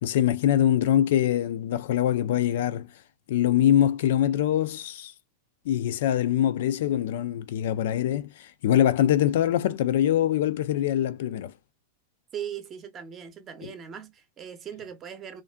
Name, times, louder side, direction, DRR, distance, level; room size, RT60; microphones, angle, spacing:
voice 1, 0.0-2.9 3.3-5.1 5.7-11.5 13.6-13.7, left 11 dB, 70° left, 0.3 m, -23 dB
voice 2, 12.3-15.4, right 8 dB, 25° right, 0.7 m, -39 dB
2.5 x 2.5 x 2.2 m
supercardioid pair, 145°, 0 cm